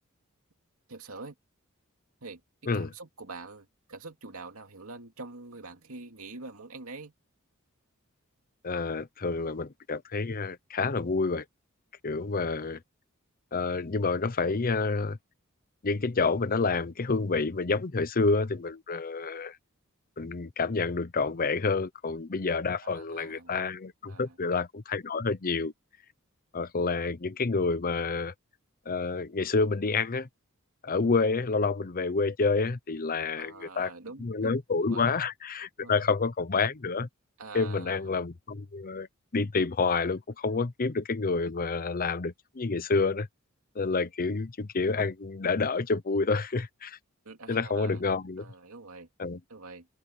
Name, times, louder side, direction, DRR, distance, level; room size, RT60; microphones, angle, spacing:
voice 1, 0.9-1.3 2.2-7.1 9.4-9.5 22.8-23.6 24.0-24.4 33.4-34.6 34.8-35.1 35.8-36.0 37.4-38.2 47.2-48.0 48.4-49.1 49.5-49.9, right 3 dB, 80° right, 2.6 m, -45 dB
voice 2, 8.6-11.4 12.0-12.8 13.5-15.2 15.8-19.6 20.2-25.7 26.5-28.3 28.9-30.3 30.8-33.9 34.2-37.1 37.5-39.1 39.3-43.3 43.7-47.0 47.5-48.4 49.2-49.4, left 4 dB, 40° left, 0.7 m, -28 dB
head